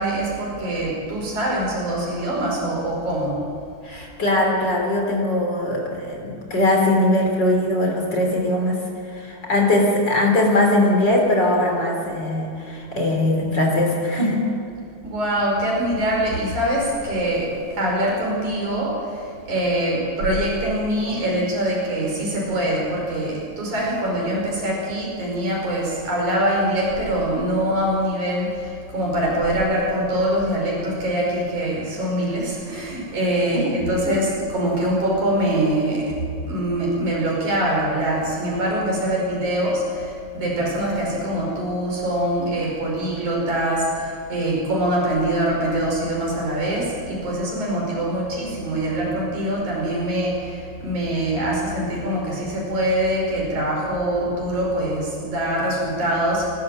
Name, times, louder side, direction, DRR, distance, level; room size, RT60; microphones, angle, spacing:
voice 1, 0.0-3.4 15.0-36.2 36.5-56.4, right 1 dB, 75° right, -2 dB, 6.7 m, -23 dB
voice 2, 3.8-14.4 33.5-33.7 34.0-34.2, left 1 dB, 35° left, 1 dB, 3.7 m, -21 dB
26.5 x 13.5 x 7.8 m, 2.4 s
omnidirectional pair, 3.4 m